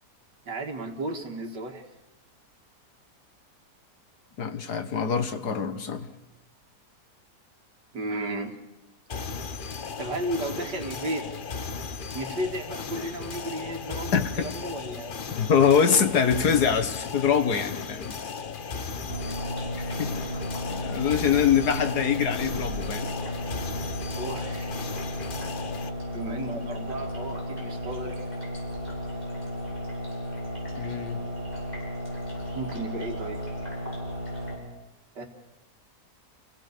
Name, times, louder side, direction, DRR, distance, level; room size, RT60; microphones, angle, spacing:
voice 1, 0.5-1.9 7.9-8.6 10.0-11.3 12.1-15.2 24.1-24.8 26.1-28.2 32.5-33.4 35.2-35.3, right 1 dB, 90° right, 2.7 m, -33 dB
voice 2, 4.4-6.1 14.1-14.5 15.4-18.2 19.8-20.3 20.7-23.1 30.8-31.2, left 7 dB, 70° left, 1.9 m, -24 dB
sound 1, 9.1-25.9, left 5 dB, 40° left, 0.8 m, -36 dB
sound 2, 19.1-34.5, equal, 25° left, 7.4 m, -34 dB
28.5 x 17.5 x 6.8 m
omnidirectional pair, 1.8 m